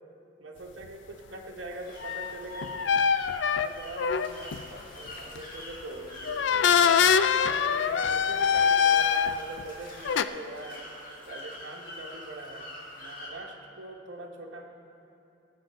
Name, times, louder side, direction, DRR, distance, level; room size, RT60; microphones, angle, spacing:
voice 1, 0.4-3.0 3.6-7.3 7.5-10.8 11.2-14.6, right 2 dB, 70° right, -1 dB, 1.2 m, -42 dB
sound 1, 1.7-13.3, left 1 dB, 45° left, 2.2 m, -46 dB
sound 2, 2.0-4.6 5.1-5.4 6.3-9.6 10.0-10.2, left 7 dB, 65° left, 0.4 m, -24 dB
18.5 x 7.8 x 4.3 m, 2.7 s
head